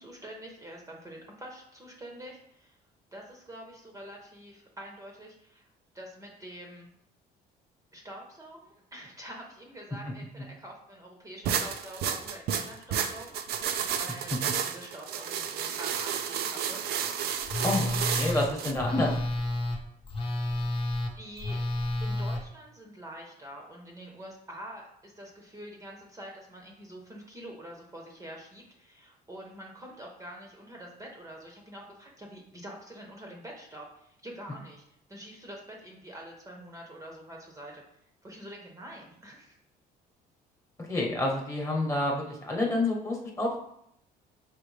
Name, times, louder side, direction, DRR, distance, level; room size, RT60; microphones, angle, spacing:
voice 1, 0.0-2.8 3.1-5.7 5.9-6.9 7.9-16.8 20.6-20.7 21.1-21.6 22.0-34.8 35.1-37.8 38.2-39.6, right 1 dB, 20° right, 0 dB, 0.8 m, -46 dB
sound 1, 11.4-18.7, right 8 dB, 70° right, 0.5 m, -31 dB
Telephone, 17.4-22.4, left 1 dB, 35° left, 0.7 m, -31 dB
voice 2, 17.6-19.1 40.8-43.6, left 2 dB, 20° left, -1 dB, 1.1 m, -28 dB
5.1 x 3.0 x 3.2 m, 0.72 s
cardioid pair, 110°, 17 cm